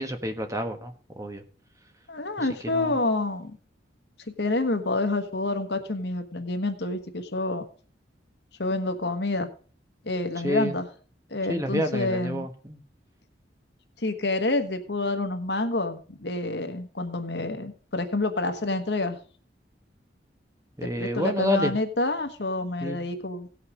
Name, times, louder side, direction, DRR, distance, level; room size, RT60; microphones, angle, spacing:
voice 1, 0.0-1.4 2.4-2.9 10.4-10.7 11.5-12.8 20.8-21.7 22.8-23.0, left 1 dB, 15° right, 6 dB, 1.2 m, -29 dB
voice 2, 2.1-3.5 4.4-7.6 8.6-9.5 10.0-10.9 11.3-12.5 14.0-19.2 20.8-23.5, left 2 dB, 65° left, 8 dB, 1.3 m, -28 dB
17.5 x 5.8 x 4.9 m, 0.41 s
head